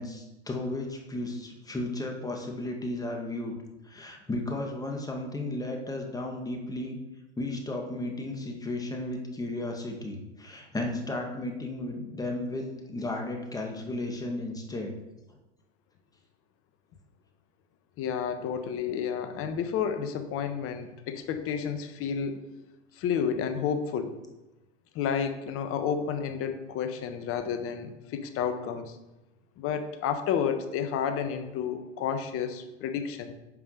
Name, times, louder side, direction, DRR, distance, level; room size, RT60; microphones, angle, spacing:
voice 1, 0.0-3.6 3.9-7.0 7.4-14.9, left 2 dB, 10° left, 2 dB, 2.1 m, -34 dB
voice 2, 18.0-22.4 23.0-24.1 24.9-29.0 29.6-33.3, left 7 dB, 40° left, 9 dB, 1.4 m, -31 dB
9.9 x 5.6 x 6.7 m, 0.98 s
hypercardioid pair, 110°, 35 cm